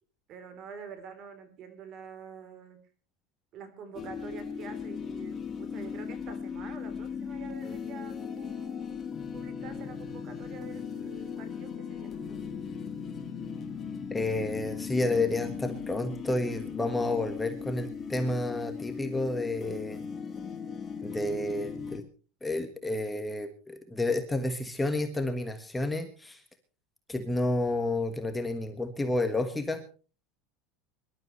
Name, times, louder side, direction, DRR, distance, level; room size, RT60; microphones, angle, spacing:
voice 1, 0.3-2.8 3.5-9.0 9.3-12.5, right 6 dB, 40° right, 10 dB, 3.6 m, -47 dB
sound 1, 3.9-22.0, left 6 dB, 25° left, 2.1 m, -38 dB
voice 2, 14.1-20.0 21.0-22.0 22.4-26.4 27.1-29.8, left 2 dB, 10° left, 7 dB, 1.5 m, -30 dB
24.0 x 12.5 x 3.2 m, 0.36 s
supercardioid pair, 140°, 0 cm